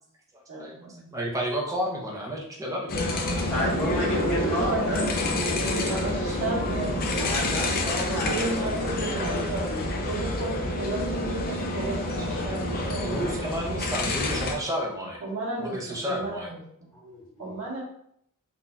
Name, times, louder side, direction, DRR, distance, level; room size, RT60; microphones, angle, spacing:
voice 1, 0.5-1.1 4.4-5.1 5.6-13.4 15.2-16.6 17.4-17.8, right 2 dB, 80° right, -6 dB, 1.4 m, -34 dB
voice 2, 1.1-3.1 5.8-5.9 9.3-9.4 10.2-10.3 13.0-15.2 15.6-16.5, equal, 15° right, -1 dB, 0.6 m, -31 dB
sound 1, 2.9-14.6, left 1 dB, 45° left, 0.5 m, -28 dB
voice 3, 3.5-5.3 7.2-9.2 16.9-17.5, left 1 dB, ahead, -10 dB, 1.2 m, -32 dB
3.9 x 2.6 x 2.3 m, 0.70 s
head